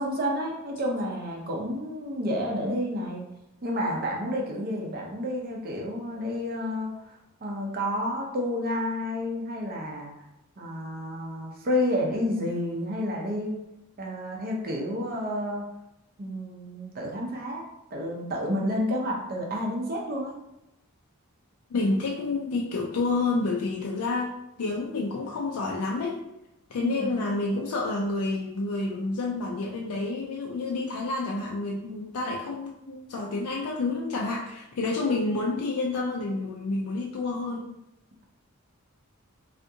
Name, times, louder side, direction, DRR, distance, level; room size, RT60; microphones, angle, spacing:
voice 1, 0.0-3.2 3.6-10.1 10.6-13.6 14.0-15.7 16.2-17.7 17.9-20.4 26.8-27.2, equal, 45° right, -1 dB, 0.6 m, -30 dB
voice 2, 21.7-24.3 24.6-26.2 26.7-37.7, left 3 dB, 90° left, -1 dB, 0.4 m, -29 dB
3.4 x 2.4 x 2.7 m, 0.90 s
head